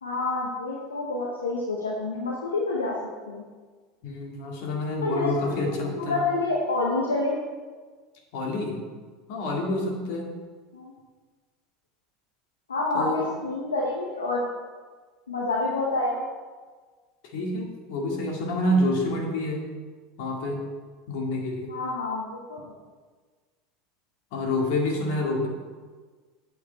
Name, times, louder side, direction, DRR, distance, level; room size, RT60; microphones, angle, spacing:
voice 1, 0.0-2.9 3.3-3.4 5.0-7.3 10.7-10.9 12.7-14.4 15.3-16.2 21.7-22.7, left 2 dB, 85° left, -2 dB, 1.1 m, -28 dB
voice 2, 4.0-6.2 8.3-8.8 9.3-10.3 12.9-13.3 17.3-19.7 20.2-20.7 21.1-21.7 24.3-25.5, left 1 dB, 65° left, 0 dB, 2.1 m, -27 dB
8.4 x 6.7 x 4.4 m, 1.4 s
hypercardioid pair, 80°, 0 cm